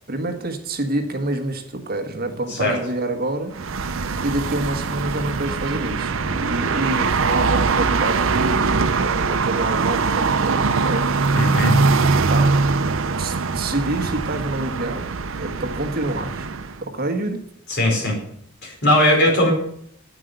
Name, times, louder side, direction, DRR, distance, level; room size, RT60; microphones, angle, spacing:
voice 1, 0.1-3.9 4.2-11.2 12.3-12.6 13.2-16.5 16.8-17.5, right 2 dB, 45° right, 7 dB, 1.5 m, -27 dB
sound 1, 3.5-16.8, right 4 dB, 70° right, 0.7 m, -22 dB
voice 2, 11.3-11.8 17.7-18.2 18.6-19.5, left 1 dB, 55° left, 0 dB, 4.6 m, -19 dB
9.6 x 9.1 x 8.1 m, 0.69 s
head